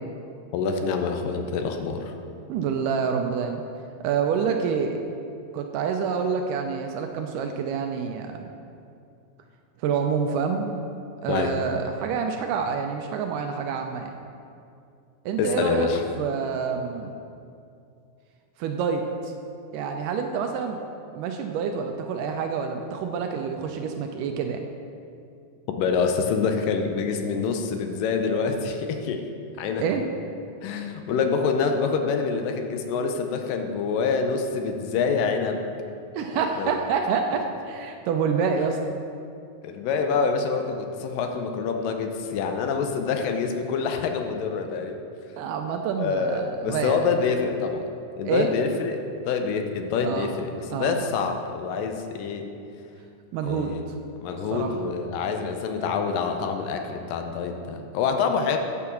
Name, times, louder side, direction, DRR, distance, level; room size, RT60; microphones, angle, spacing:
voice 1, 0.5-2.1 11.3-11.5 15.4-16.0 25.7-29.3 29.6-29.8 30.6-35.6 36.6-36.8 39.6-45.0 46.0-47.9 48.2-52.5 53.5-53.8 54.2-58.6, left 5 dB, 80° left, 5 dB, 2.3 m, -26 dB
voice 2, 2.5-3.6 4.0-5.0 5.5-8.5 9.8-10.8 11.2-14.1 15.3-15.9 16.2-17.1 18.6-19.3 19.7-20.8 21.1-24.6 29.8-30.1 36.2-38.8 45.4-47.1 48.3-48.5 50.0-50.3 50.7-51.0 53.3-53.7 54.5-54.8, right 6 dB, 80° right, 4 dB, 2.0 m, -27 dB
8.6 x 4.7 x 7.0 m, 2.5 s
omnidirectional pair, 4.0 m